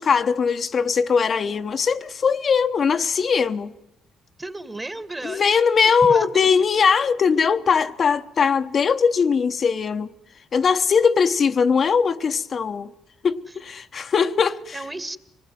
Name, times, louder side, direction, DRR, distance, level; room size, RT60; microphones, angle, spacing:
voice 1, 0.0-3.7 5.2-10.1 10.5-12.9 13.2-14.8, left 6 dB, 50° left, 1.0 m, -20 dB
voice 2, 4.4-5.5 6.0-6.7 14.7-15.2, right 2 dB, 20° right, 2.0 m, -33 dB
25.5 x 20.0 x 9.4 m
cardioid pair, 90°, 0 cm